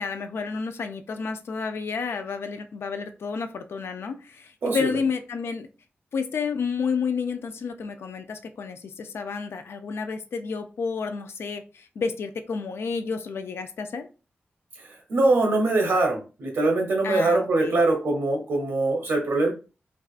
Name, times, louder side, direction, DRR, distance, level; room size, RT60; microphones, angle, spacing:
voice 1, 0.0-5.7 6.1-14.1 17.0-17.8, left 5 dB, 75° left, 8 dB, 0.4 m, -30 dB
voice 2, 15.1-19.5, right 2 dB, 75° right, 1 dB, 0.8 m, -22 dB
4.6 x 2.4 x 2.4 m, 0.32 s
wide cardioid pair, 155°, 4 cm